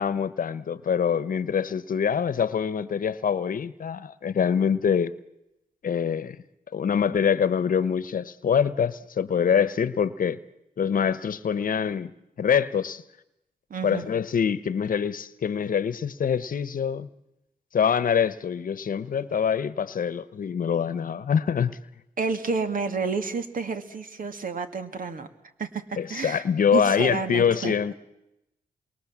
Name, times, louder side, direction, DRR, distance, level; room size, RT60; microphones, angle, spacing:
voice 1, 0.0-5.1 5.8-6.4 6.7-10.4 10.8-12.1 12.4-13.0 13.8-17.1 17.7-21.8 26.0-27.9, left 7 dB, 70° left, 1.0 m, -25 dB
voice 2, 13.7-14.1 22.2-25.3 25.6-26.4 26.7-27.7, right 4 dB, 70° right, 2.3 m, -30 dB
28.0 x 23.0 x 7.4 m
cardioid pair, 50°, 15 cm